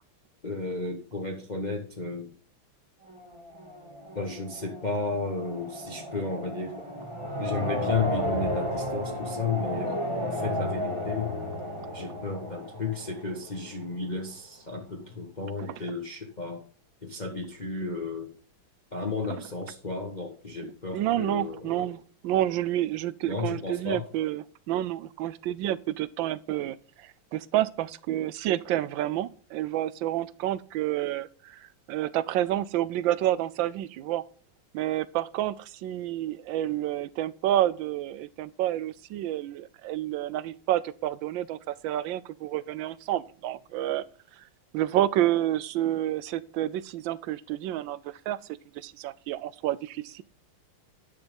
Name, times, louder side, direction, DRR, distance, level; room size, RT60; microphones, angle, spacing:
voice 1, 0.4-2.3 4.1-6.8 7.4-11.3 11.9-16.6 17.0-18.3 18.9-21.9 23.3-24.0, left 4 dB, 25° left, 1.4 m, -33 dB
sound 1, 3.1-13.9, equal, 15° right, 1.8 m, -33 dB
voice 2, 20.6-34.2 34.7-44.0 44.7-48.4 48.7-50.2, right 13 dB, 75° right, 1.2 m, -29 dB
10.5 x 6.7 x 5.2 m
omnidirectional pair, 2.3 m